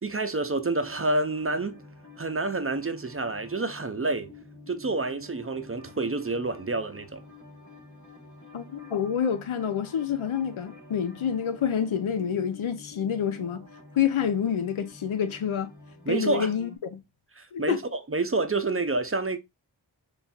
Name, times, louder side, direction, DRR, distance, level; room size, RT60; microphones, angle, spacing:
voice 1, 0.0-1.8 2.2-4.3 4.7-7.2 16.1-16.5 17.4-19.4, right 3 dB, 30° right, 0.5 m, -28 dB
sound 1, 0.7-16.8, left 3 dB, 40° left, 1.1 m, -49 dB
voice 2, 8.5-13.7 14.0-15.7 16.1-17.0 17.5-17.8, left 8 dB, 80° left, 0.6 m, -28 dB
4.2 x 3.1 x 2.3 m
wide cardioid pair, 45°, 48 cm